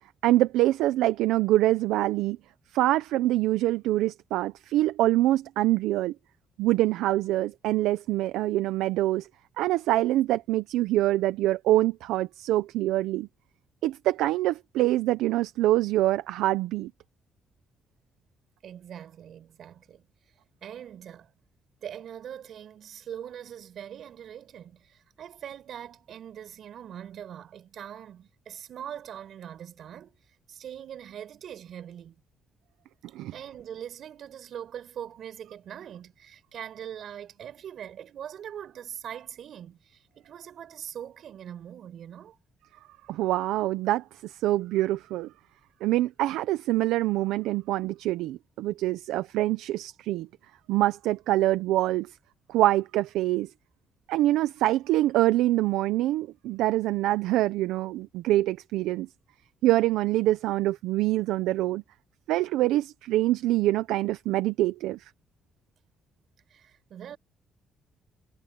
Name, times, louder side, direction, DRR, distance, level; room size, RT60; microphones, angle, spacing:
voice 1, 0.2-2.4 2.7-6.1 6.6-9.3 9.6-13.3 13.8-16.9 33.1-33.3 43.1-45.3 45.8-50.3 50.7-52.2 52.5-53.5 54.1-59.1 59.6-61.8 62.3-65.1, right 15 dB, 85° right, 0.8 m, -25 dB
voice 2, 18.6-20.1 20.6-21.3 21.8-30.2 30.5-32.2 33.3-42.4 66.5-67.2, right 9 dB, 70° right, 6.8 m, -42 dB
supercardioid pair, 60°, 0 cm